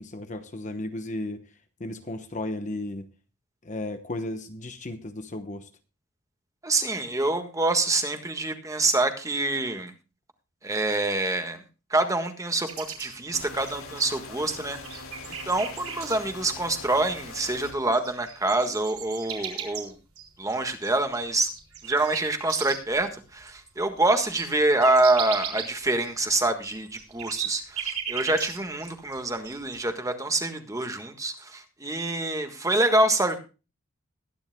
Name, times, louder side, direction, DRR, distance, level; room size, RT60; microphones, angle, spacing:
voice 1, 0.0-1.4 1.8-3.1 3.6-5.7, left 1 dB, 35° left, 8 dB, 1.0 m, -34 dB
voice 2, 6.6-9.9 10.6-11.6 11.9-15.0 15.4-19.9 20.4-21.5 21.8-33.4, right 2 dB, 15° right, 7 dB, 1.5 m, -26 dB
sound 1, 12.7-14.3 14.7-16.1 17.3-17.4 17.6-23.0 23.4-23.5 23.8-28.9 29.1-29.8, right 8 dB, 80° right, 4.1 m, -36 dB
sound 2, 13.3-17.7, left 3 dB, 75° left, 2.7 m, -42 dB
21.5 x 10.5 x 2.2 m, 0.32 s
head